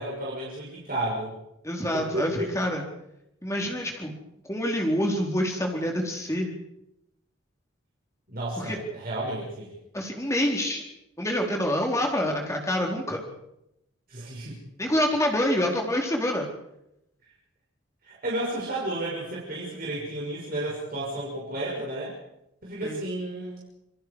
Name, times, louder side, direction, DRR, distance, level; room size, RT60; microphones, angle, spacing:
voice 1, 0.0-1.3 1.9-2.5 8.3-9.7 14.1-14.6 18.0-22.1 22.6-23.6, right 1 dB, 45° right, -5 dB, 6.4 m, -32 dB
voice 2, 1.6-2.8 3.4-4.2 4.5-6.5 8.6-8.8 9.9-10.8 11.2-13.2 14.8-16.5 22.8-23.0, equal, 15° left, 1 dB, 4.1 m, -26 dB
28.0 x 22.0 x 4.9 m, 0.82 s
head